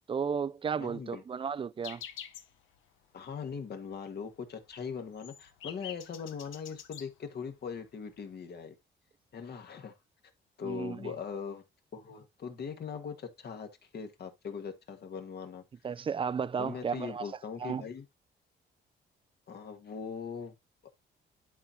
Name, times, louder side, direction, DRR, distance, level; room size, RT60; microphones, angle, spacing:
voice 1, 0.1-2.0 10.6-11.1 15.8-17.3 17.6-17.8, right 6 dB, 25° right, 0.4 m, -33 dB
voice 2, 0.8-1.2 3.1-8.8 9.3-9.9 10.6-11.6 11.9-15.6 16.6-18.0 19.5-20.5, left 6 dB, 55° left, 1.7 m, -40 dB
sound 1, 1.8-2.6 2.9-3.0 3.3-3.6 3.9-4.0 4.4-7.1 7.8-7.9 8.1-8.3, left 10 dB, 85° left, 0.9 m, -46 dB
11.0 x 4.4 x 2.8 m
cardioid pair, 90°, 20 cm